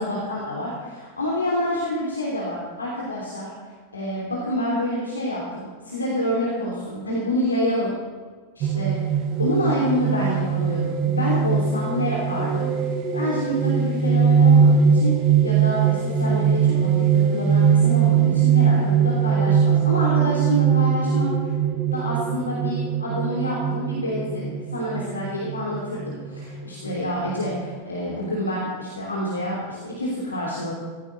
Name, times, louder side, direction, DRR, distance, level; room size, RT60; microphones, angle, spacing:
voice 1, 0.0-3.5 3.9-7.9 8.5-21.5 21.9-30.7, left 1 dB, 80° left, -4 dB, 3.0 m, -27 dB
sound 1, 8.6-27.8, right 7 dB, 35° right, 1.3 m, -21 dB
16.5 x 16.0 x 3.9 m, 1.5 s
figure-of-eight pair, 90°, 0 cm